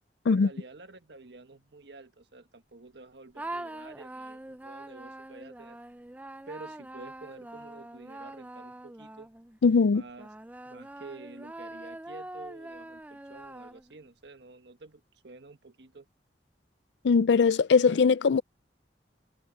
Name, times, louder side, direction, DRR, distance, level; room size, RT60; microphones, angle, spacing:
voice 1, 0.3-5.8 6.5-9.3 9.9-10.3 10.6-16.1, right 3 dB, 75° right, 1.4 m, -49 dB
sound 1, 3.3-9.6 10.2-14.1, right 1 dB, 10° right, 0.5 m, -43 dB
voice 2, 9.6-10.0 17.0-18.4, left 5 dB, 85° left, 0.4 m, -21 dB
head